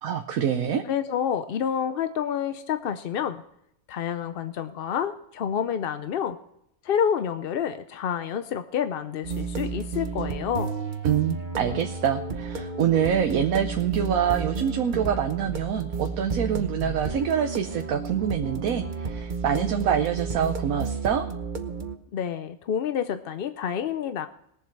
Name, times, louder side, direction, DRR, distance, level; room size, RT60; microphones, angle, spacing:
voice 1, 0.0-0.8 11.0-21.2, right 8 dB, 75° right, 5 dB, 1.2 m, -25 dB
voice 2, 0.9-3.4 3.9-6.4 6.8-10.7 22.1-24.3, left 8 dB, 60° left, 10 dB, 0.6 m, -28 dB
sound 1, 9.2-22.0, right 4 dB, 40° right, 0.9 m, -32 dB
20.5 x 7.4 x 4.6 m, 0.77 s
omnidirectional pair, 1.5 m